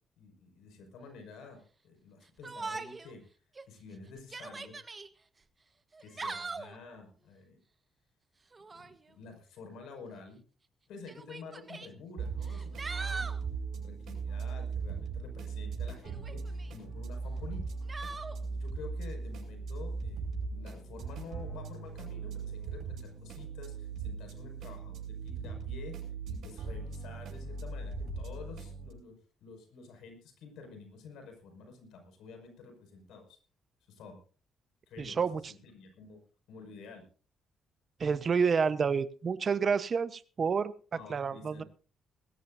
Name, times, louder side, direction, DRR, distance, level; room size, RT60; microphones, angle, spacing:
voice 1, 0.2-1.6 1.8-3.2 3.7-4.8 6.0-7.6 8.7-10.4 10.9-13.4 13.7-17.8 18.4-29.2 29.4-33.4 33.9-34.2 34.9-35.2 35.5-36.2 36.5-37.0 40.9-41.6, left 4 dB, 85° left, 4 dB, 5.7 m, -49 dB
Yell, 2.4-3.1 3.5-3.6 4.2-5.1 5.9-6.8 8.5-9.0 10.1-10.2 11.1-11.9 12.4-13.4 16.0-16.7 17.9-18.4, right 3 dB, 30° right, 1.3 m, -41 dB
chill background music, 12.2-28.9, right 4 dB, 75° right, 7.4 m, -39 dB
voice 2, 35.0-35.5 38.0-41.6, right 5 dB, 45° right, 13 dB, 1.0 m, -29 dB
20.0 x 16.5 x 2.7 m, 0.39 s
cardioid pair, 90°, 0 cm